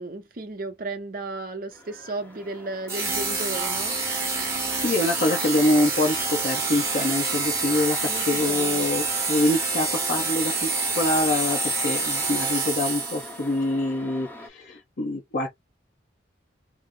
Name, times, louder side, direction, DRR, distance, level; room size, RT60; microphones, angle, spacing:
voice 1, 0.0-4.0 8.0-8.9, right 2 dB, 50° right, 0.7 m, -34 dB
sound 1, 1.7-14.5, left 1 dB, 10° left, 0.8 m, -43 dB
sound 2, 2.9-13.4, right 3 dB, 15° right, 1.0 m, -27 dB
voice 2, 4.7-10.7 11.0-15.5, left 1 dB, 55° left, 0.8 m, -25 dB
2.8 x 2.0 x 3.7 m
head